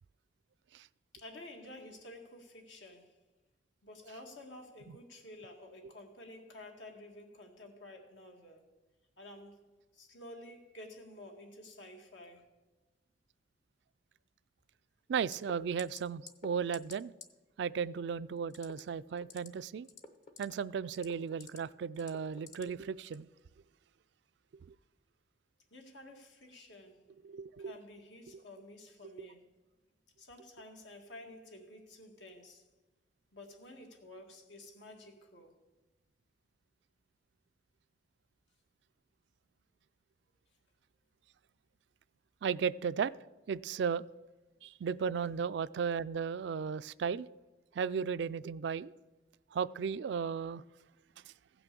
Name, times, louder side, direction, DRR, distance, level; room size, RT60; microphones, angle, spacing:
voice 1, 1.1-3.2 3.8-8.7 9.2-9.6 9.9-12.5 25.7-27.0 27.6-29.5 30.2-32.7 33.3-35.6, left 1 dB, 80° left, 1.9 m, -51 dB
voice 2, 15.1-17.1 17.6-19.9 20.4-23.3 27.2-27.7 29.2-29.3 42.4-43.1 43.5-44.0 44.6-47.3 47.7-48.9 49.5-50.6, right 6 dB, 70° right, 0.3 m, -35 dB
sound 1, 15.3-15.5 15.8-16.0 16.3-16.5 16.7-17.0 17.2-17.3 18.5-18.8 19.2-19.5 19.8-20.5 20.9-21.6 22.0-22.6 23.0-23.2, left 5 dB, 40° left, 0.8 m, -48 dB
15.5 x 6.0 x 6.8 m
head